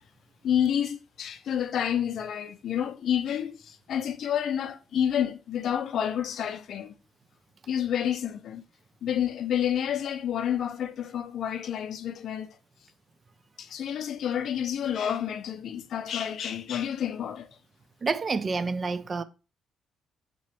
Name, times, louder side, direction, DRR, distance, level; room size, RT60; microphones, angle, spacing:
voice 1, 0.4-6.9 7.7-8.6 9.0-12.6 13.6-17.5, left 9 dB, 70° left, 0.4 m, -29 dB
voice 2, 18.0-19.2, right 4 dB, 40° right, 0.3 m, -28 dB
3.7 x 3.0 x 3.2 m
cardioid pair, 90°, 0 cm